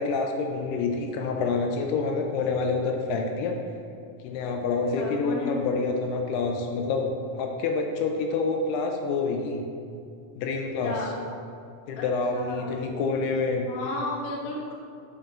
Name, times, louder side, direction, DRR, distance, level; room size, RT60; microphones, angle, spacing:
voice 1, 0.0-3.5 4.2-7.1 7.4-9.6 10.4-11.1 11.9-13.7, left 4 dB, 85° left, 2 dB, 2.6 m, -27 dB
voice 2, 4.9-5.6 10.8-11.1 12.0-12.7 13.7-14.7, left 2 dB, 65° left, -2 dB, 1.9 m, -33 dB
6.6 x 5.2 x 5.8 m, 2.4 s
omnidirectional pair, 4.7 m